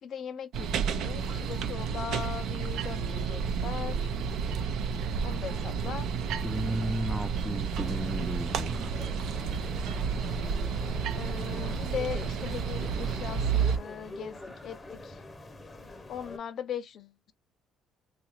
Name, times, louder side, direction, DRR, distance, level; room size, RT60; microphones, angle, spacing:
voice 1, 0.0-4.1 5.2-6.1 11.1-15.2 16.1-17.3, left 8 dB, 60° left, 0.4 m, -39 dB
sound 1, 0.5-13.8, right 6 dB, 70° right, 0.5 m, -31 dB
sound 2, 4.1-13.8, right 3 dB, 50° right, 0.8 m, -45 dB
voice 2, 6.4-8.9, right 1 dB, 5° right, 0.3 m, -34 dB
sound 3, 7.8-16.4, left 2 dB, 25° left, 0.7 m, -45 dB
3.1 x 2.4 x 3.0 m
supercardioid pair, 75°, 0 cm